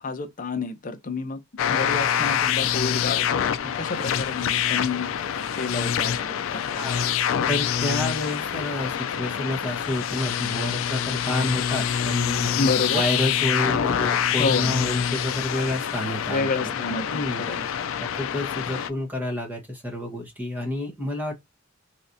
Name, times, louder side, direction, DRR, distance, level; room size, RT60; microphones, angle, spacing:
voice 1, 0.0-1.4 1.7-3.3 3.6-5.1 5.6-6.9 12.6-13.0 14.4-14.7 16.3-17.6, left 3 dB, 40° left, 0.6 m, -29 dB
sound 1, 1.6-18.9, left 9 dB, 80° left, 0.4 m, -26 dB
voice 2, 6.7-7.1 7.5-16.8 17.1-21.3, left 1 dB, 10° right, 1.1 m, -29 dB
3.2 x 2.8 x 2.6 m
head